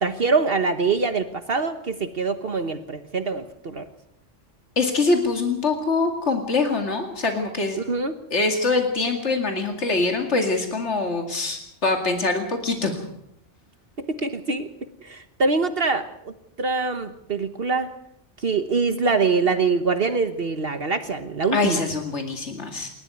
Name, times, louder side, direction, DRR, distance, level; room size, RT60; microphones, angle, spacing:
voice 1, 0.0-3.9 7.9-8.1 14.2-14.7 15.0-16.3 16.6-17.9 18.4-21.8, right 4 dB, 60° right, 9 dB, 1.4 m, -24 dB
voice 2, 4.8-7.8 8.3-13.0 21.5-22.9, left 3 dB, 90° left, 4 dB, 2.6 m, -24 dB
28.0 x 13.0 x 9.3 m, 0.77 s
omnidirectional pair, 1.1 m